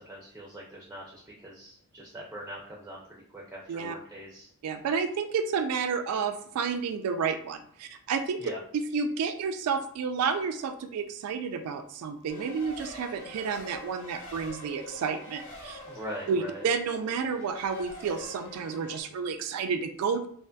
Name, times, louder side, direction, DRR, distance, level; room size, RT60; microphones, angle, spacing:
voice 1, 0.0-3.0 3.3-4.5 8.4-8.6 15.8-16.6, equal, 10° right, -3 dB, 0.4 m, -42 dB
voice 2, 4.6-8.4 8.9-15.8 16.3-20.3, right 5 dB, 80° right, 13 dB, 0.3 m, -30 dB
Race car auto racing, 12.3-19.0, left 1 dB, 65° left, 0.9 m, -45 dB
2.5 x 2.4 x 2.2 m, 0.63 s
head